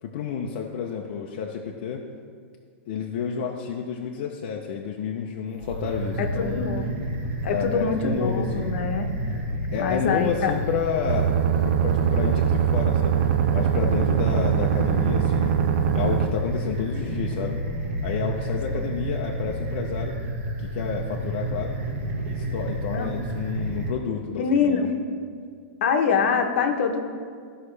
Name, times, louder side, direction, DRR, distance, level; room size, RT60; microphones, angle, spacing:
voice 1, 0.0-2.0 2.9-6.6 7.5-8.7 9.7-11.3 11.6-13.2 13.5-15.5 15.9-17.6 18.0-20.2 20.6-21.8 22.3-24.8, left 7 dB, 45° left, 0 dB, 0.6 m, -30 dB
sound 1, 5.6-23.9, right 1 dB, 80° right, 1.5 m, -30 dB
voice 2, 6.2-6.9 7.4-9.1 9.7-10.5 22.9-23.1 24.3-24.9 25.8-27.0, left 6 dB, 60° left, 5 dB, 1.0 m, -24 dB
sound 2, 11.1-16.3, right 9 dB, 50° right, 0.5 m, -22 dB
13.5 x 5.5 x 3.3 m, 2.1 s
supercardioid pair, 165°, 7 cm